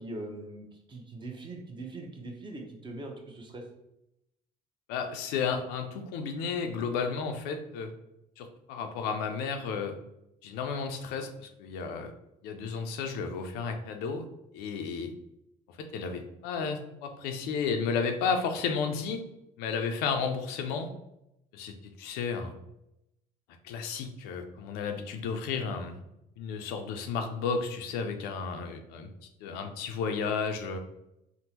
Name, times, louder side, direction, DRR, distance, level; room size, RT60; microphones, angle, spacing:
voice 1, 0.0-3.6, right 2 dB, 30° right, 2 dB, 0.7 m, -41 dB
voice 2, 4.9-7.9 8.4-10.0 10.4-12.1 12.4-14.2 14.5-15.1 15.7-19.2 19.6-20.9 21.5-22.5 23.6-26.0 26.4-29.1 29.4-30.8, left 5 dB, 90° left, 6 dB, 0.4 m, -33 dB
3.5 x 2.1 x 2.8 m, 0.85 s
supercardioid pair, 90°, 17 cm